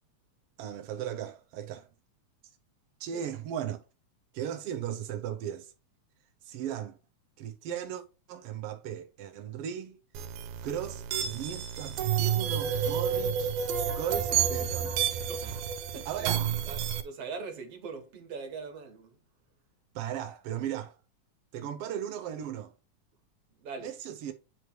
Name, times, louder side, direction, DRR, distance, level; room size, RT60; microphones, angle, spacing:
voice 1, 0.6-1.9 3.0-3.8 4.3-5.7 6.4-7.0 7.4-8.0 8.3-10.0 10.6-15.0 15.2-15.3 16.0-16.5 19.9-21.0 21.5-22.7 23.8-24.3, right 10 dB, 75° right, 1.4 m, -37 dB
sound 1, 10.1-17.0, right 8 dB, 90° right, 2.2 m, -30 dB
voice 2, 15.3-16.4 16.7-19.2 23.6-23.9, right 4 dB, 60° right, 2.3 m, -42 dB
9.6 x 3.2 x 4.4 m
omnidirectional pair, 3.4 m